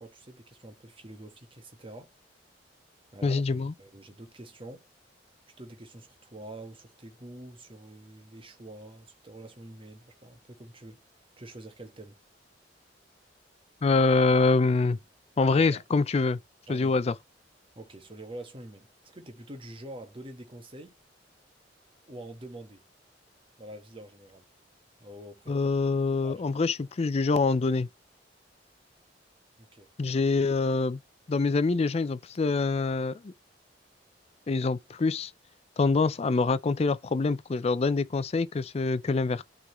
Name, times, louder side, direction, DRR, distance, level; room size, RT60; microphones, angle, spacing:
voice 1, 0.0-2.1 3.1-3.4 3.8-4.8 5.6-11.0 11.4-12.2 15.5-15.8 16.7-17.0 17.7-21.0 22.1-22.8 23.6-24.5 25.0-25.6 26.2-26.5 29.6-29.9, right 1 dB, 30° right, 1.3 m, -46 dB
voice 2, 3.2-3.7 13.8-15.0 15.4-16.4 16.7-17.1 25.5-27.9 30.0-31.0 31.3-33.3 34.5-35.3 35.8-39.4, left 3 dB, 35° left, 0.4 m, -25 dB
11.5 x 3.8 x 3.0 m
head